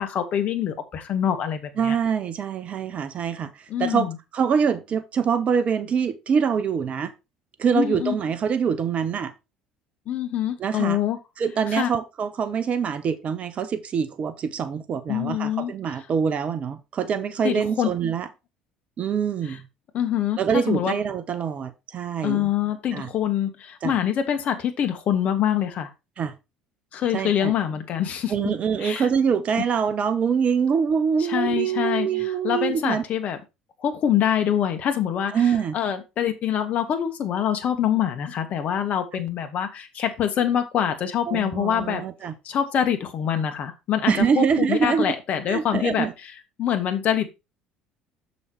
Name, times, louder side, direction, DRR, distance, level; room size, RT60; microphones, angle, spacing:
voice 1, 0.0-2.0 3.7-4.2 7.7-8.1 10.1-11.2 11.7-11.9 15.1-15.7 17.4-17.9 19.9-20.9 22.2-25.9 26.9-28.3 28.8-29.1 31.3-32.1 32.4-33.4 33.8-35.3 35.7-42.0 42.4-46.1 46.6-47.3, left 9 dB, 50° left, 1.4 m, -25 dB
voice 2, 1.8-3.5 3.8-7.1 7.6-9.3 10.6-11.0 11.4-18.3 19.0-19.6 20.4-22.5 22.9-23.1 23.8-23.9 26.2-26.3 27.1-27.5 28.3-33.0 35.3-35.8 41.3-42.3 44.1-45.2 45.5-46.1, right 7 dB, 45° right, 1.0 m, -24 dB
6.4 x 5.4 x 4.5 m
hypercardioid pair, 60°, 3 cm